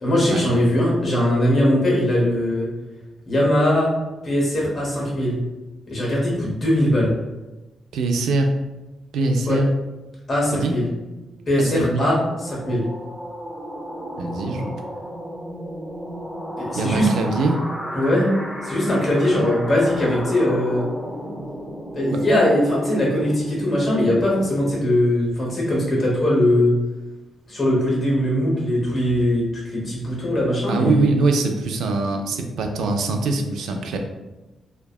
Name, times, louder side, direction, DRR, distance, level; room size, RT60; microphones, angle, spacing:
voice 1, 0.0-2.7 3.3-3.9 4.2-5.4 5.9-7.1 9.5-9.6 10.3-10.9 11.5-12.2 12.4-12.9 16.6-17.1 17.9-18.3 18.6-20.9 21.9-26.7 27.5-29.4 29.7-31.1, left 1 dB, 30° left, -4 dB, 0.9 m, -20 dB
voice 2, 7.9-8.6 9.1-9.7 10.5-10.7 11.6-12.1 14.2-14.7 16.7-17.6 22.1-22.2 30.7-34.0, right 3 dB, 80° right, 4 dB, 0.3 m, -22 dB
sound 1, 11.0-23.7, equal, 5° right, 0.5 m, -34 dB
2.6 x 2.2 x 2.3 m, 1.1 s
cardioid pair, 145°, 0 cm